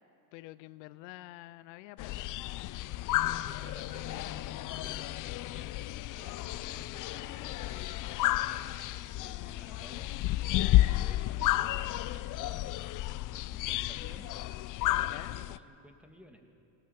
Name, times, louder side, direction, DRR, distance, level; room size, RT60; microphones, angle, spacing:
voice 1, 0.3-2.3 15.1-15.4, left 18 dB, 85° left, 17 dB, 0.6 m, -48 dB
sound 1, 2.0-15.6, left 16 dB, 40° left, 0.5 m, -32 dB
voice 2, 3.2-5.8 6.1-10.1 10.8-13.0 13.3-14.4 14.9-16.4, equal, 5° right, 3 dB, 2.2 m, -54 dB
19.0 x 19.0 x 7.4 m, 2.4 s
supercardioid pair, 105°, 49 cm